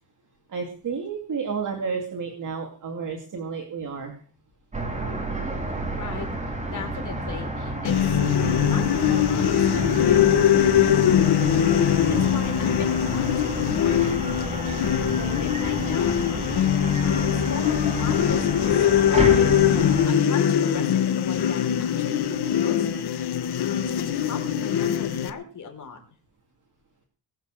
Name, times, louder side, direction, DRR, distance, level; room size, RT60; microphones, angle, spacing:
voice 1, 0.5-4.2 14.2-14.4 19.7-20.0, right 5 dB, 45° right, 3 dB, 2.5 m, -31 dB
sound 1, 4.7-20.1, right 2 dB, 15° right, 3.4 m, -31 dB
voice 2, 6.0-6.3 6.7-8.2 8.6-16.6 17.2-23.1 23.9-26.0, left 6 dB, 40° left, 4 dB, 4.6 m, -38 dB
sound 2, 7.8-25.3, left 9 dB, 60° left, 1.4 m, -22 dB
21.0 x 7.2 x 7.7 m, 0.42 s
cardioid pair, 150°, 44 cm